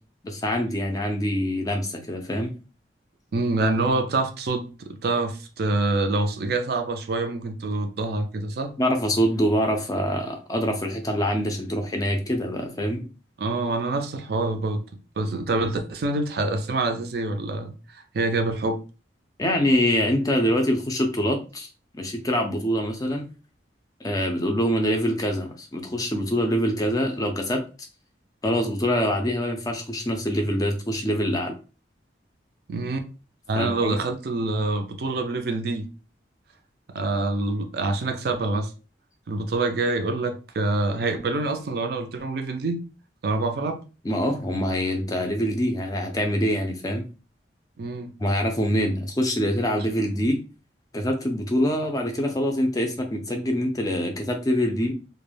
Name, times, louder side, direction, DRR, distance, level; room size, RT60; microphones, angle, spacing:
voice 1, 0.2-2.5 8.8-13.0 19.4-21.7 21.9-23.2 24.0-27.6 28.4-31.6 33.6-34.0 44.0-47.0 48.2-50.4 50.9-54.9, equal, 20° left, 0.4 m, -25 dB
voice 2, 3.3-8.7 13.4-18.8 32.7-33.1 33.5-35.9 36.9-38.7 39.3-42.8 43.2-43.8 47.8-48.1, right 2 dB, 55° right, 0.4 m, -26 dB
2.2 x 2.0 x 3.2 m
head